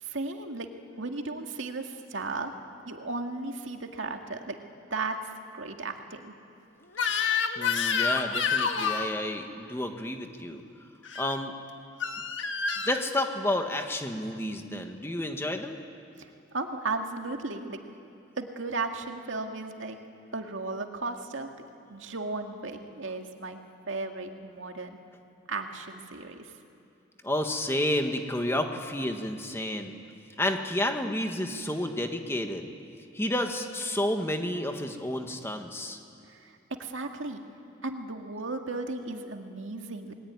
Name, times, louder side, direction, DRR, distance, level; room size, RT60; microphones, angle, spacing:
voice 1, 0.0-0.7 1.0-2.5 2.9-4.6 4.9-5.2 5.5-6.3 16.2-17.8 18.4-20.0 20.3-21.5 21.9-23.6 23.9-25.0 25.5-26.5 36.3-37.4 37.8-40.1, right 3 dB, 85° right, 4 dB, 2.1 m, -35 dB
Crying sobbing / Screech, 6.9-9.1 11.0-11.4 12.0-13.0, left 6 dB, 75° left, 1.6 m, -28 dB
voice 2, 7.6-10.6 11.2-11.5 12.9-15.8 27.2-29.9 30.4-32.7 33.1-36.0, left 1 dB, 15° left, 4 dB, 1.6 m, -30 dB
28.5 x 21.5 x 9.7 m, 2.5 s
head